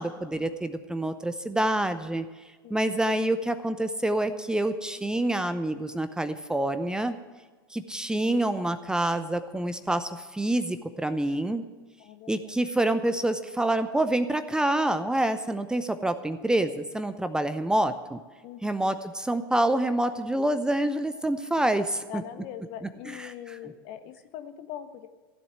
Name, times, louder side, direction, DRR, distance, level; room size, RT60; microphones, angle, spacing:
voice 1, 0.0-2.3 2.7-7.1 7.7-11.6 12.3-18.2 18.6-22.2 23.1-23.3, right 1 dB, 5° right, 10 dB, 0.7 m, -27 dB
voice 2, 12.0-12.5 18.4-18.9 22.1-25.1, left 10 dB, 50° left, 9 dB, 1.2 m, -42 dB
15.5 x 7.9 x 9.3 m, 1.3 s
figure-of-eight pair, 85°, 12 cm